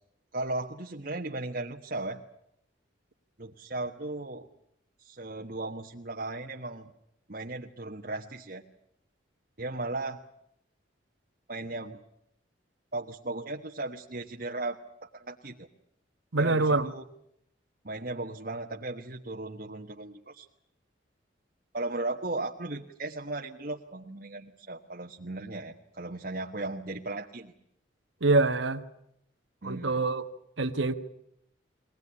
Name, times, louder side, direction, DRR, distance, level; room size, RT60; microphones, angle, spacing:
voice 1, 0.3-2.2 3.4-4.5 5.0-6.9 7.3-8.6 9.6-10.2 11.5-12.0 12.9-14.8 15.1-15.7 16.4-17.0 17.8-20.5 21.7-27.5 29.6-30.0, right 2 dB, 50° right, 1 dB, 1.3 m, -36 dB
voice 2, 16.3-16.9 28.2-28.8 29.6-30.2 30.6-30.9, right 3 dB, 80° right, 7 dB, 1.3 m, -25 dB
22.5 x 19.5 x 9.8 m, 0.76 s
head